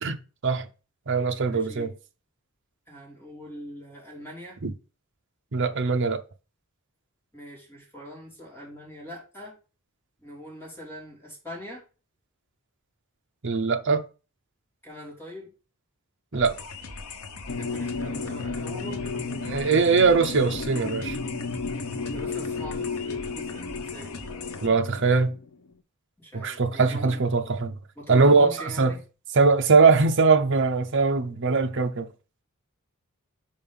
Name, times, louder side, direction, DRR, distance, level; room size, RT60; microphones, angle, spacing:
voice 1, 0.0-0.7 1.1-1.9 4.6-4.7 5.5-6.2 13.4-14.0 16.3-16.5 19.4-21.2 24.6-25.4 26.3-27.7 28.1-28.5 28.8-29.0 29.3-32.1, right 4 dB, 60° right, 0.7 m, -21 dB
voice 2, 1.5-1.9 2.9-4.6 7.3-9.6 10.2-11.8 14.8-15.5 17.6-19.6 22.0-24.2 26.2-27.2 27.9-29.0, equal, 10° left, 3.3 m, -42 dB
sound 1, 16.3-24.7, left 4 dB, 80° left, 1.0 m, -40 dB
sound 2, 17.5-25.7, left 4 dB, 60° left, 0.7 m, -33 dB
5.5 x 4.5 x 5.4 m
head